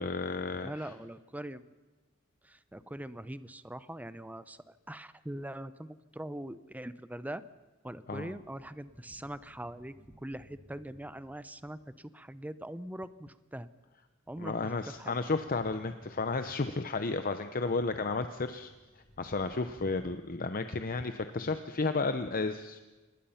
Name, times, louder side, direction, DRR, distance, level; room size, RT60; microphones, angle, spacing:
voice 1, 0.0-0.9 8.1-8.3 14.4-18.7 19.2-22.8, left 3 dB, 45° left, 9 dB, 0.8 m, -33 dB
voice 2, 0.6-1.7 2.4-7.4 7.8-9.9 10.2-13.7 14.3-15.2, right 1 dB, 10° right, 14 dB, 0.7 m, -42 dB
sound 1, 8.2-11.8 12.8-13.1 14.4-17.0 18.4-20.2, equal, 10° left, 5.7 m, -59 dB
26.0 x 20.5 x 5.8 m, 1.2 s
head